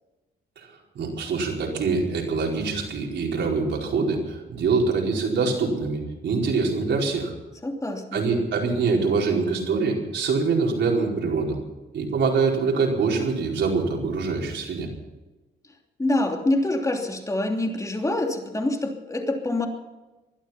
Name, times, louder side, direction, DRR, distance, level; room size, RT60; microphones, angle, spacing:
voice 1, 0.6-7.3 8.1-11.6 11.9-14.9, right 4 dB, 65° right, -1 dB, 4.7 m, -24 dB
voice 2, 7.6-8.2 16.0-19.7, left 1 dB, 15° left, 3 dB, 3.0 m, -25 dB
20.5 x 12.0 x 5.8 m, 1.1 s
cardioid pair, 90°, 20 cm